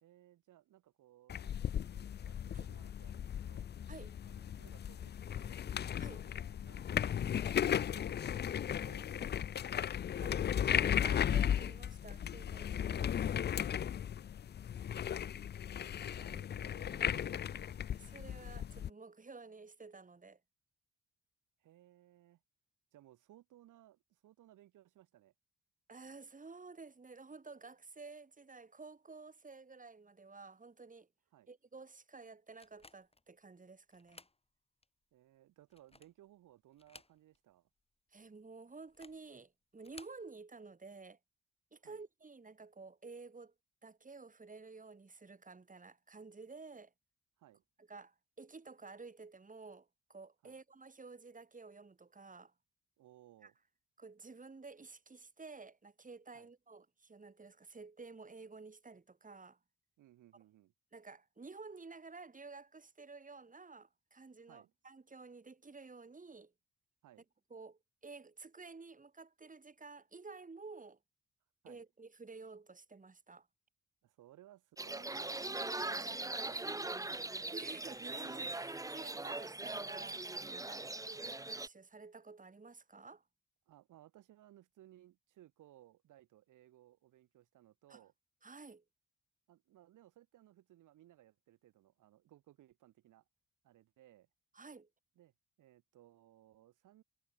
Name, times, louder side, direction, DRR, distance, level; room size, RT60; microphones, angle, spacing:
voice 1, 0.0-3.7 4.2-5.6 6.1-10.0 12.7-13.5 16.1-17.7 21.6-22.4 22.9-25.3 31.3-31.5 35.1-37.7 41.8-42.0 47.4-47.6 50.4-50.6 53.0-53.5 56.3-56.5 60.0-60.7 64.5-64.7 67.0-67.2 71.6-71.8 74.0-77.6 80.7-80.9 83.7-88.1 89.5-93.2 93.6-94.3 95.1-95.3 95.6-97.0, right 13 dB, 90° right, 3.2 m, -62 dB
sound 1, 1.3-18.9, left 9 dB, 35° left, 0.4 m, -36 dB
voice 2, 3.9-4.2 6.0-6.3 10.2-12.7 17.9-20.4 25.9-31.1 31.5-34.2 38.1-41.2 41.7-43.5 43.8-46.9 47.8-52.5 53.4-53.5 54.0-59.6 60.9-66.5 67.5-71.0 71.7-73.5 77.5-83.2 87.9-88.0 88.4-88.8 94.5-94.9, right 4 dB, 25° right, 2.6 m, -52 dB
sound 2, 32.6-33.3 33.9-34.4 34.8-34.9 35.6-36.2 36.7-37.5 37.8-37.9 38.8-39.3 39.8-40.2, left 3 dB, 20° left, 2.2 m, -58 dB
sound 3, 74.8-81.7, right 2 dB, 10° right, 0.7 m, -41 dB
cardioid pair, 70°, 30 cm